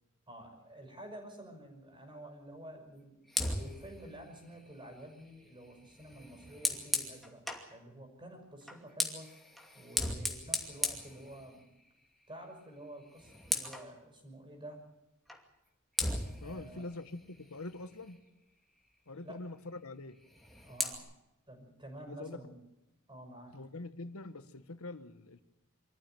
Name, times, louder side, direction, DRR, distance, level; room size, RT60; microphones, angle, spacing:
voice 1, 0.3-3.2 3.5-7.4 7.7-9.3 9.7-11.7 12.3-14.8 16.4-16.9 19.1-19.4 20.7-21.1 21.5-22.5 23.1-23.6, right 1 dB, 25° right, 4 dB, 5.8 m, -50 dB
Fire, 3.3-7.7 8.6-11.9 12.2-12.5 12.8-13.9 15.3-15.4 16.0-18.3 20.2-21.0, left 1 dB, ahead, 2.5 m, -38 dB
voice 2, 16.4-18.2 19.1-20.2 22.1-22.5 23.5-25.4, left 2 dB, 85° left, 11 dB, 1.2 m, -44 dB
24.5 x 14.5 x 9.2 m, 0.93 s
head